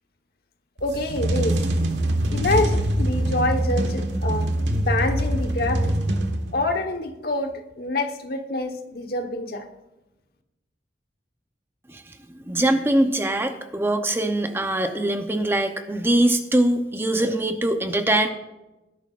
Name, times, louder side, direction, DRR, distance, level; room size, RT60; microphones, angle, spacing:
voice 1, 0.8-1.6 2.3-5.9 6.5-9.7, left 2 dB, 55° left, 5 dB, 1.2 m, -26 dB
sound 1, 0.8-6.8, right 1 dB, 80° right, 1.5 m, -24 dB
voice 2, 12.5-18.3, right 1 dB, 15° right, 6 dB, 0.8 m, -22 dB
19.5 x 11.5 x 2.5 m, 0.99 s
head